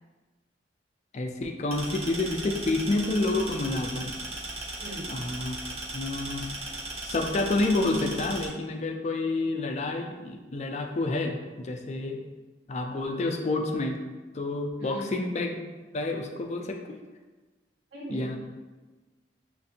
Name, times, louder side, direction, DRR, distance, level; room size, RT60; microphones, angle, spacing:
voice 1, 1.1-4.1 5.1-5.6 5.9-6.5 7.0-12.2 12.7-14.0 14.3-15.6 15.9-17.0 18.1-18.4, left 2 dB, 40° left, 3 dB, 0.4 m, -29 dB
sound 1, 1.7-8.5, right 2 dB, 35° right, 0.9 m, -37 dB
voice 2, 4.8-5.2 14.8-15.1 17.9-18.4, equal, 85° right, -5 dB, 1.3 m, -39 dB
6.5 x 2.5 x 2.7 m, 1.2 s
head